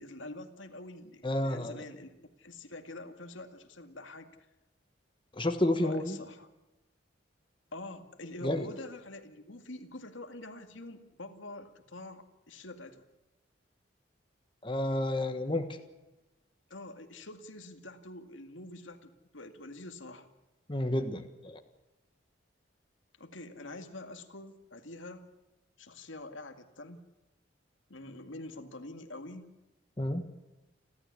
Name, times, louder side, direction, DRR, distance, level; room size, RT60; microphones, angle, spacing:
voice 1, 0.0-2.1 2.4-4.3 5.8-6.5 7.7-13.0 16.7-20.3 23.2-25.3 25.8-27.0 27.9-29.5, left 2 dB, 85° left, 6 dB, 2.2 m, -46 dB
voice 2, 1.2-1.8 5.3-6.2 8.4-8.7 14.6-15.6 20.7-21.6 30.0-30.2, left 1 dB, 25° left, 6 dB, 1.4 m, -30 dB
30.0 x 13.0 x 9.7 m, 1.0 s
head